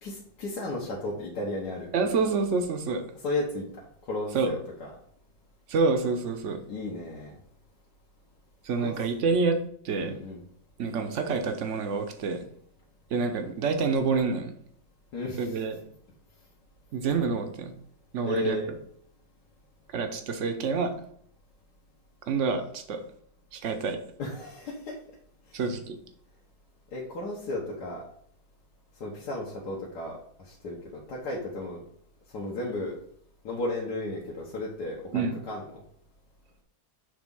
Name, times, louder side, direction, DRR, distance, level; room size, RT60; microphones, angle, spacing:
voice 1, 0.0-1.9 3.2-3.6 4.1-4.9 6.7-7.4 8.8-8.9 10.0-10.4 15.1-15.6 18.2-18.7 24.2-25.0 26.9-28.0 29.0-30.2 30.5-31.8 32.3-32.9 33.4-35.8, left 2 dB, 65° left, -4 dB, 1.6 m, -34 dB
voice 2, 1.9-3.0 4.3-4.5 5.7-6.6 8.6-9.6 9.8-10.2 10.8-12.4 13.1-14.5 15.4-15.8 16.9-17.7 18.1-18.6 19.9-20.9 22.3-23.0 23.5-24.0 25.5-26.0 35.1-35.4, right 4 dB, 55° right, 6 dB, 0.9 m, -27 dB
6.5 x 3.5 x 5.4 m, 0.64 s
omnidirectional pair, 2.0 m